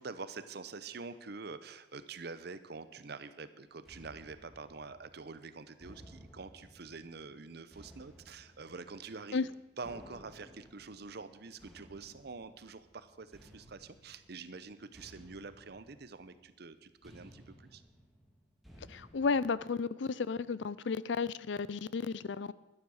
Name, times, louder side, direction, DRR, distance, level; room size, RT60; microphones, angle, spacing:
voice 1, 0.0-9.5 9.8-17.8, right 4 dB, 60° right, 12 dB, 0.8 m, -46 dB
sound 1, 3.9-19.5, equal, ahead, 1.9 m, -58 dB
voice 2, 18.9-22.5, left 4 dB, 70° left, 18 dB, 0.5 m, -33 dB
12.0 x 10.0 x 6.4 m, 0.99 s
head